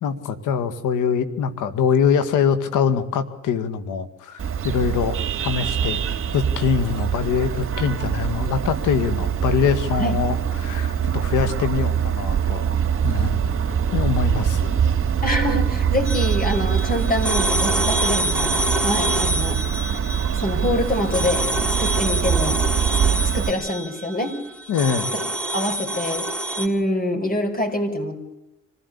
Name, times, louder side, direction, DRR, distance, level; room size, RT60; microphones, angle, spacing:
voice 1, 0.0-6.0 6.3-12.8 13.0-13.5 13.9-14.8 24.7-25.1, left 6 dB, 85° left, 11 dB, 2.2 m, -23 dB
Vehicle horn car horn honking, 4.4-23.5, right 8 dB, 45° right, 3.0 m, -23 dB
voice 2, 15.2-18.5 18.8-19.6 20.4-21.5 21.8-22.6 23.1-24.3 25.5-26.3 26.6-28.2, left 1 dB, 30° left, 5 dB, 5.9 m, -25 dB
sound 1, 16.1-26.7, right 1 dB, 5° left, 4.4 m, -26 dB
25.5 x 16.5 x 8.5 m, 0.93 s
cardioid pair, 90°, 30 cm